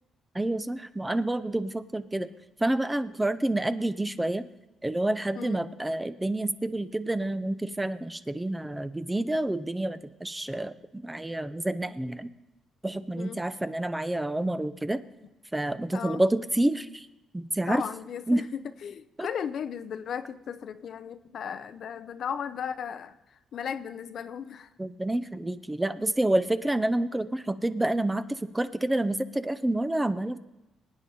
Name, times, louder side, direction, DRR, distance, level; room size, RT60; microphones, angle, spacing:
voice 1, 0.3-2.3 2.6-4.4 4.8-12.3 12.8-15.0 15.5-17.1 17.3-17.8 18.3-18.4 19.2-19.3 24.8-30.4, right 1 dB, 10° right, 13 dB, 0.7 m, -28 dB
voice 2, 17.7-24.7, left 8 dB, 60° left, 12 dB, 0.6 m, -36 dB
23.5 x 9.3 x 4.3 m, 0.99 s
cardioid pair, 90°, 0 cm